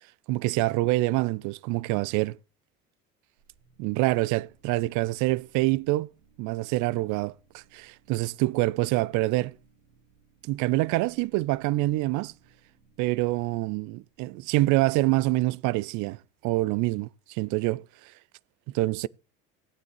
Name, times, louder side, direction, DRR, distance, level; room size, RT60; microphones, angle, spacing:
voice 1, 0.3-2.4 3.8-6.1 6.4-9.5 10.4-12.3 13.0-18.1 18.7-19.1, right 19 dB, 50° right, 0.5 m, -26 dB
sound 1, 3.4-15.1, right 5 dB, 75° right, 5.9 m, -64 dB
16.0 x 9.3 x 3.1 m
hypercardioid pair, 65°, 39 cm